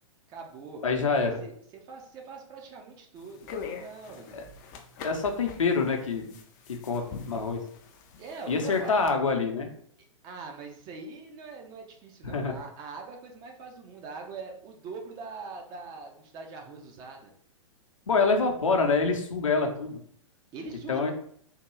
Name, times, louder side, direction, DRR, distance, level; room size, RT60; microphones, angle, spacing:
voice 1, 0.3-0.8 1.2-4.4 8.2-9.0 10.2-17.3 18.1-18.3 20.5-21.1, right 4 dB, 25° right, 2 dB, 0.5 m, -42 dB
voice 2, 0.8-1.4 4.3-4.4 5.0-6.3 6.7-7.6 8.5-9.7 12.2-12.6 18.1-20.0 20.9-21.1, left 4 dB, 75° left, 3 dB, 0.7 m, -26 dB
sound 1, 3.2-9.1, left 5 dB, 35° left, 0.4 m, -44 dB
3.6 x 2.2 x 3.0 m, 0.62 s
figure-of-eight pair, 110°, 17 cm